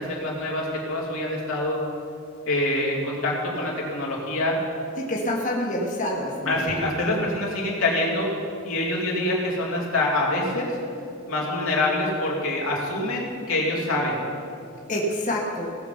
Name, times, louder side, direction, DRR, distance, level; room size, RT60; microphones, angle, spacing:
voice 1, 0.0-1.8 2.5-4.6 6.5-8.3 8.6-10.8 11.3-14.2, left 1 dB, 80° left, -4 dB, 2.7 m, -25 dB
voice 2, 5.0-6.7 14.9-15.8, left 1 dB, 40° left, -2 dB, 1.5 m, -27 dB
17.5 x 7.3 x 5.7 m, 2.5 s
head